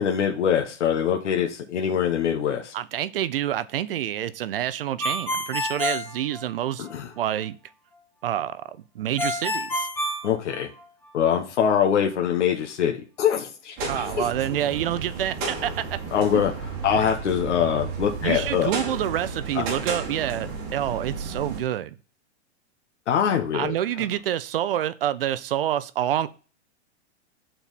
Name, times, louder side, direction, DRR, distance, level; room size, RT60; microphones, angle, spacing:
voice 1, 0.0-2.7 6.8-7.1 10.2-10.7 11.1-14.3 16.1-16.5 16.8-18.7 19.5-19.6 23.1-23.7, left 8 dB, 80° left, 1.2 m, -23 dB
voice 2, 2.7-6.9 7.1-7.6 8.2-9.9 13.9-16.0 16.3-16.4 18.2-21.9 23.5-26.3, right 11 dB, 55° right, 0.5 m, -27 dB
Ringtone, 5.0-6.9 9.2-11.1, left 1 dB, 5° left, 1.0 m, -28 dB
sound 1, 13.8-21.6, right 4 dB, 25° right, 1.5 m, -33 dB
7.1 x 4.4 x 4.1 m
hypercardioid pair, 170°, 35 cm